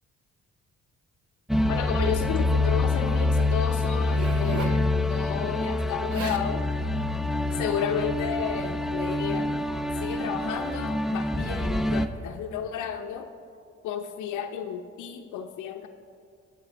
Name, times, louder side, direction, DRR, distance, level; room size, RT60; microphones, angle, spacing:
sound 1, 1.5-12.1, left 2 dB, ahead, 0.4 m, -26 dB
voice 1, 1.7-6.6 7.6-9.6 10.0-13.3 13.8-15.9, left 8 dB, 80° left, 6 dB, 0.6 m, -32 dB
Zipper (clothing), 4.0-4.8 5.8-5.9 6.1-6.5 7.2-7.4, right 6 dB, 50° right, 0.7 m, -37 dB
18.0 x 6.7 x 3.4 m, 2.3 s
cardioid pair, 90°, 30 cm